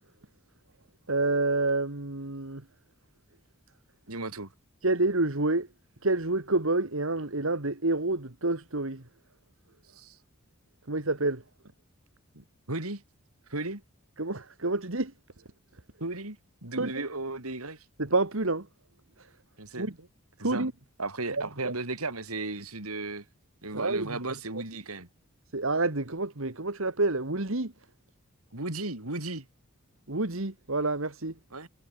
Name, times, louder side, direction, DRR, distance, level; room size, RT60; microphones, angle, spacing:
voice 1, 1.1-2.6 4.8-5.7 6.0-9.0 10.9-11.4 14.2-15.1 16.8-17.1 18.0-18.7 19.8-19.9 20.4-20.7 21.4-21.7 23.7-24.6 25.5-27.7 30.1-31.3, right 2 dB, 70° right, 1.9 m, -28 dB
voice 2, 4.1-4.5 9.9-10.2 12.3-13.0 13.5-13.8 16.0-17.8 19.6-19.9 20.4-20.7 21.0-23.2 23.6-25.1 28.5-29.5 31.5-31.7, right 2 dB, 85° right, 4.6 m, -35 dB
head